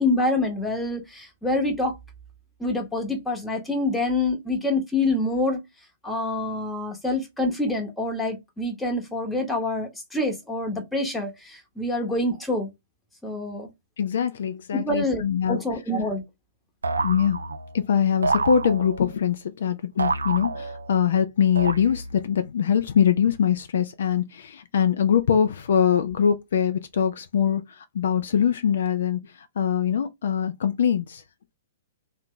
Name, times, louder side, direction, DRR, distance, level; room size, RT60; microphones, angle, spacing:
voice 1, 0.0-1.9 2.6-5.6 6.0-12.7 13.2-13.7 14.7-15.2 15.5-16.2, left 2 dB, 5° left, 0.9 m, -26 dB
voice 2, 14.0-15.6 17.0-17.4 17.7-31.2, left 8 dB, 60° left, 0.3 m, -23 dB
sound 1, 16.8-17.8 18.2-19.2 20.0-21.0 21.6-22.3, right 3 dB, 75° right, 0.3 m, -28 dB
2.7 x 2.1 x 3.6 m
figure-of-eight pair, 115°, 0 cm